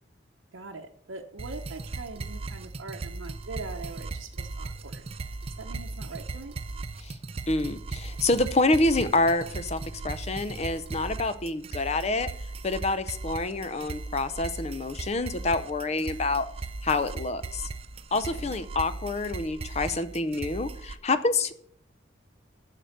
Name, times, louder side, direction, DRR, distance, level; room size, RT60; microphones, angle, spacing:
voice 1, 0.5-6.5 18.1-18.6, right 3 dB, 80° right, 0 dB, 0.8 m, -42 dB
sound 1, 1.4-21.0, right 3 dB, 30° right, 0.4 m, -38 dB
voice 2, 7.5-12.3 12.6-16.5 16.8-17.7 18.1-21.5, left 2 dB, 35° left, 12 dB, 0.6 m, -27 dB
7.7 x 6.7 x 6.5 m, 0.65 s
head